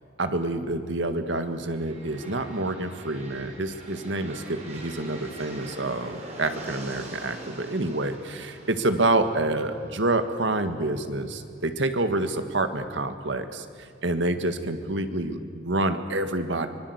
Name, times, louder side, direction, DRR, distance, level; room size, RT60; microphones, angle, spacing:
voice 1, 0.2-16.7, right 2 dB, 75° right, 8 dB, 1.8 m, -27 dB
sound 1, 1.5-11.3, right 2 dB, 35° right, 5.6 m, -44 dB
24.5 x 22.0 x 8.1 m, 2.4 s
head